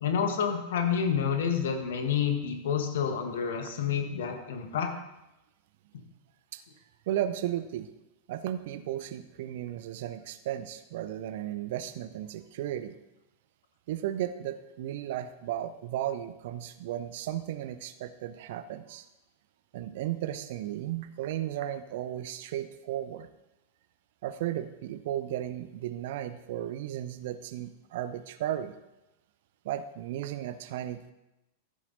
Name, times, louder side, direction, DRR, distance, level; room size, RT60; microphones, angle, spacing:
voice 1, 0.0-4.9 5.9-6.0, left 7 dB, 60° left, 5 dB, 1.6 m, -29 dB
voice 2, 7.1-7.9 8.3-12.9 13.9-19.1 19.7-23.3 24.2-28.7 29.6-31.1, right 12 dB, 55° right, 12 dB, 0.7 m, -35 dB
14.0 x 7.4 x 4.0 m, 0.93 s
figure-of-eight pair, 90°, 0 cm